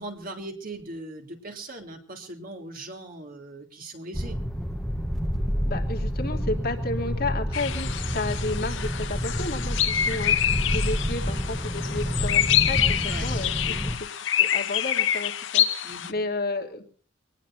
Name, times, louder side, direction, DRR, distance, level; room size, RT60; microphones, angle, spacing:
voice 1, 0.0-4.4 13.1-13.3 13.6-14.0 15.8-16.2, right 2 dB, 50° right, 4 dB, 3.3 m, -39 dB
sound 1, 4.1-14.0, equal, ahead, 1.1 m, -29 dB
voice 2, 5.6-13.9 14.4-16.8, left 2 dB, 55° left, 1 dB, 3.0 m, -32 dB
sound 2, 7.5-16.1, left 10 dB, 80° left, 1.0 m, -26 dB
24.5 x 19.0 x 2.7 m, 0.42 s
head